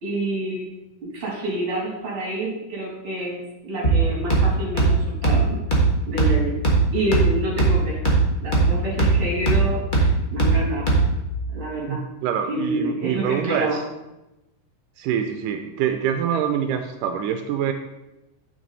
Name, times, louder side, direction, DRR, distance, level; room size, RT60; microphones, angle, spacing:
voice 1, 0.0-0.6 1.0-5.6 6.1-6.6 6.9-8.1 8.4-10.9 11.5-12.0 12.5-13.8, right 1 dB, 45° right, -3 dB, 3.5 m, -28 dB
sound 1, 3.8-11.3, right 3 dB, 50° left, 0.5 m, -20 dB
voice 2, 11.9-13.8 15.0-17.7, right 8 dB, 85° right, 6 dB, 2.1 m, -25 dB
8.9 x 6.2 x 4.0 m, 0.96 s
omnidirectional pair, 3.7 m